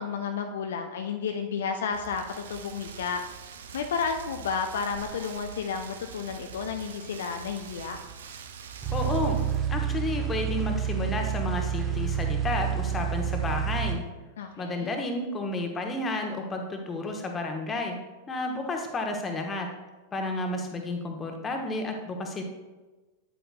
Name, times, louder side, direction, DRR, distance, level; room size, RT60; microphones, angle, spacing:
voice 1, 0.0-3.2 3.7-8.0 14.4-14.9, left 6 dB, 60° left, 5 dB, 0.4 m, -32 dB
Rain, 1.9-9.7, right 6 dB, 60° right, 0.6 m, -44 dB
sound 1, 8.8-13.9, right 9 dB, 20° right, 1.0 m, -29 dB
voice 2, 8.9-9.4 9.7-14.0 14.6-18.0 18.3-19.7 20.1-22.4, left 2 dB, 20° left, 3 dB, 1.1 m, -31 dB
9.2 x 7.8 x 2.2 m, 1.2 s
figure-of-eight pair, 90°, 0 cm